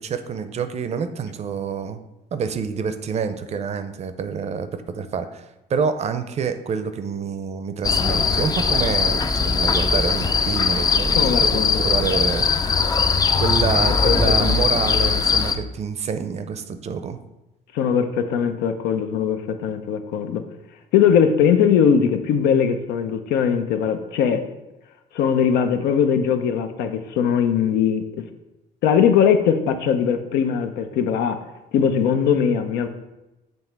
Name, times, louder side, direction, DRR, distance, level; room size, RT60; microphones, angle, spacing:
voice 1, 0.0-2.0 2.3-12.5 13.4-17.2, right 6 dB, 40° right, 10 dB, 0.5 m, -27 dB
sound 1, 7.8-15.5, left 5 dB, 25° left, 0.4 m, -20 dB
voice 2, 11.2-11.8 13.9-14.7 17.7-20.4 20.9-24.4 25.1-28.0 28.8-31.4 31.7-32.9, left 7 dB, 90° left, 7 dB, 0.6 m, -20 dB
7.0 x 3.2 x 4.5 m, 0.98 s
cardioid pair, 110°, 17 cm